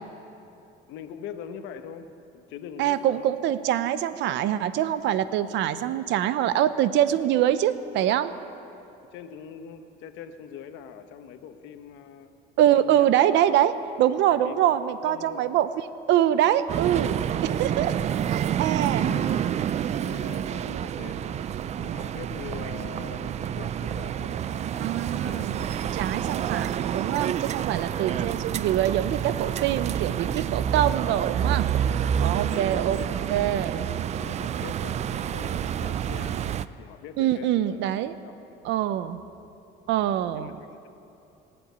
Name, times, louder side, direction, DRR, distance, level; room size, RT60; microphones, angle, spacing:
voice 1, 0.9-3.3 9.0-12.3 12.8-13.1 14.3-14.8 15.0-15.5 18.2-18.3 18.6-19.5 20.0-25.9 27.6-28.6 32.3-33.4 33.9-36.5 36.8-37.8 38.2-38.4 40.0-40.9, left 8 dB, 80° left, 8 dB, 1.1 m, -43 dB
voice 2, 2.8-8.3 12.6-18.0 18.3-19.1 24.8-25.7 25.9-31.7 32.0-33.0 33.3-33.9 37.2-38.1 38.6-39.2 39.9-40.5, right 11 dB, 70° right, 13 dB, 0.7 m, -24 dB
sound 1, 16.7-36.7, right 9 dB, 35° right, 0.4 m, -28 dB
19.0 x 7.8 x 9.3 m, 2.8 s
cardioid pair, 130°, 19 cm